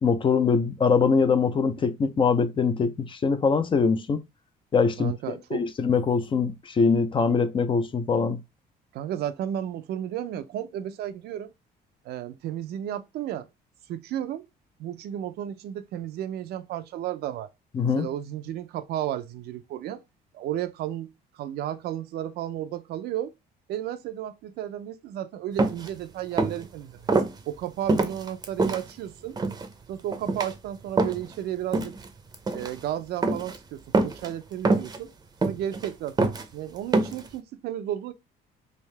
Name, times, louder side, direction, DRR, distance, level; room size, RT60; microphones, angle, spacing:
voice 1, 0.0-4.2 4.7-8.4 17.7-18.1, left 5 dB, 30° left, 0.5 m, -23 dB
voice 2, 5.0-5.6 8.9-11.5 12.0-13.5 13.9-14.5 14.8-17.5 18.0-20.0 20.3-23.3 23.7-27.1 27.5-29.4 29.9-31.9 32.5-35.1 35.4-38.1, right 11 dB, 70° right, 0.5 m, -33 dB
sound 1, 25.6-25.9 26.3-26.7 27.1-27.3 27.9-28.8 29.4-29.7 30.1-30.5 31.0-31.3 31.7-32.1 32.3-32.7 33.2-33.6 33.9-34.3 34.6-35.0 35.4-35.9 36.2-36.4 36.9-37.3, right 3 dB, 25° right, 0.6 m, -24 dB
3.5 x 2.7 x 3.2 m
cardioid pair, 110°, 17 cm